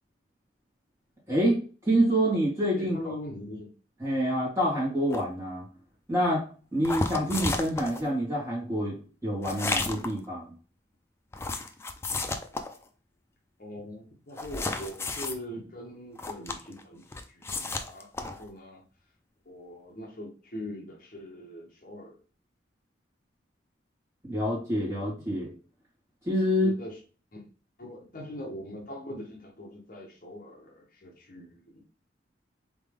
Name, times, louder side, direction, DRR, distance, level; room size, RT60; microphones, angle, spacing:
voice 1, 1.3-3.1 4.0-5.7 6.1-6.4 6.7-10.5 24.2-25.5 26.2-26.7, equal, 15° right, -7 dB, 2.4 m, -27 dB
voice 2, 2.7-3.7 13.6-18.8 19.4-22.2 26.6-27.0 27.3-27.5 27.8-31.8, equal, 45° left, -1 dB, 1.0 m, -42 dB
sound 1, 5.1-5.2 6.8-8.0 9.4-10.2 11.3-12.8 14.4-15.3 16.2-16.8 17.1-18.5, left 3 dB, 15° left, 0.3 m, -32 dB
4.0 x 3.6 x 3.5 m, 0.39 s
head